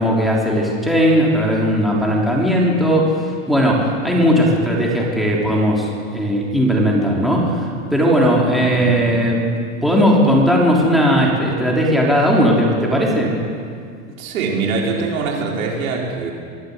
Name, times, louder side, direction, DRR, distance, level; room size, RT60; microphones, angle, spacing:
voice 1, 0.0-3.1 3.5-5.9 6.1-7.5 7.9-9.5 9.8-13.3, equal, ahead, -3 dB, 3.5 m, -17 dB
voice 2, 8.6-8.9 14.2-16.3, right 4 dB, 85° right, -1 dB, 5.1 m, -23 dB
23.5 x 15.0 x 8.2 m, 2.2 s
supercardioid pair, 145°, 40 cm